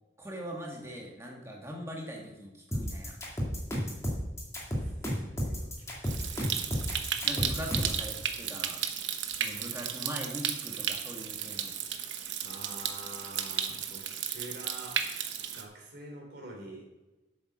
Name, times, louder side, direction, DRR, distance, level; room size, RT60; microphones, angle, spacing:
voice 1, 0.2-3.2 7.2-8.8 9.3-11.7, equal, 15° right, 0 dB, 1.7 m, -41 dB
sound 1, 2.7-8.0, equal, 15° left, 2.2 m, -32 dB
voice 2, 4.6-6.2 12.4-14.0 14.3-15.0 15.5-16.9, right 1 dB, 60° right, 0 dB, 3.1 m, -46 dB
Stream, 6.0-15.6, right 8 dB, 90° right, 0.9 m, -34 dB
8.2 x 7.4 x 6.2 m, 1.1 s
head